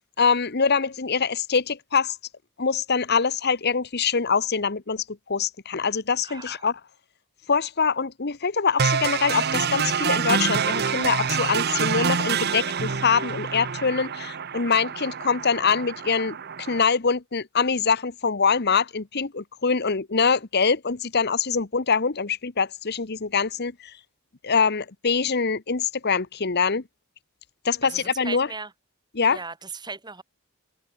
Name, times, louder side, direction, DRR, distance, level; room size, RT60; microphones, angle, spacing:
voice 1, 0.0-2.2 2.6-6.8 7.5-23.9 24.4-26.8 27.6-28.5 29.1-29.4, left 5 dB, 50° left, 1.2 m, -24 dB
voice 2, 6.2-6.6 27.8-28.7 29.3-30.2, right 4 dB, 20° right, 2.9 m, -37 dB
sound 1, 8.8-16.8, right 6 dB, 50° right, 1.0 m, -26 dB
head